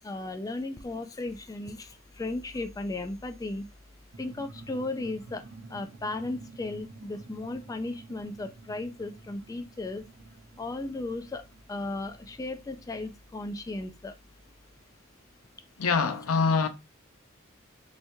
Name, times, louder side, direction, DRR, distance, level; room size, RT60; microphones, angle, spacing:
voice 1, 0.0-3.7 4.2-10.0 10.6-14.2, left 2 dB, 15° left, 0.3 m, -35 dB
sound 1, 4.1-13.3, right 3 dB, 70° right, 0.7 m, -50 dB
voice 2, 15.8-16.7, left 5 dB, 90° left, 0.6 m, -24 dB
3.4 x 2.9 x 2.6 m
head